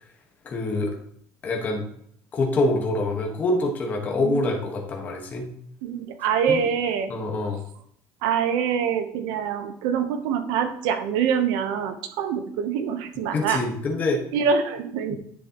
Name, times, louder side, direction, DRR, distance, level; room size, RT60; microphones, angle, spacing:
voice 1, 0.4-0.9 1.4-1.8 2.3-5.5 6.5-6.6 7.1-7.6 13.3-14.2 15.1-15.2, left 2 dB, 25° left, 1 dB, 1.4 m, -25 dB
voice 2, 5.8-7.1 8.2-13.6 14.3-15.2, right 7 dB, 80° right, 8 dB, 1.0 m, -25 dB
10.0 x 6.5 x 3.0 m, 0.68 s
cardioid pair, 180°, 7 cm